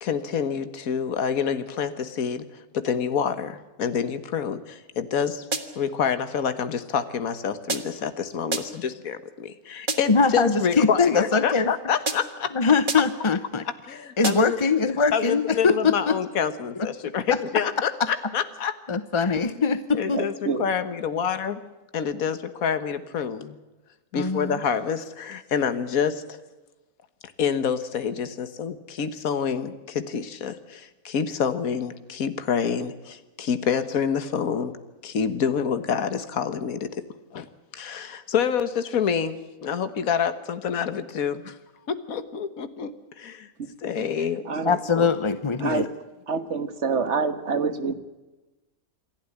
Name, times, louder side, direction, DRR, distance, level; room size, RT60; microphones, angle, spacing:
voice 1, 0.0-5.5 5.8-12.5 13.7-14.6 15.1-18.7 19.9-21.6 21.9-23.6 24.1-26.4 27.4-34.8 35.0-37.1 37.3-37.5 37.7-41.6 41.9-43.5 43.8-45.1 45.6-45.7, left 7 dB, 70° left, 11 dB, 1.7 m, -27 dB
sound 1, 5.5-5.9 7.7-8.1 8.5-8.9 9.9-10.3 12.1-12.5 12.9-13.3 14.2-14.7, right 3 dB, 35° right, 1.6 m, -31 dB
voice 2, 10.1-11.7 12.5-13.6 14.2-16.2 18.9-20.2 24.1-24.5 44.6-45.9, left 4 dB, 30° left, 12 dB, 0.6 m, -22 dB
voice 3, 20.1-20.7 43.6-43.7 44.0-44.1 44.5-44.8 45.6-45.9 46.3-47.9, right 4 dB, 50° right, 11 dB, 1.7 m, -27 dB
27.0 x 12.0 x 10.0 m, 1.1 s
omnidirectional pair, 1.6 m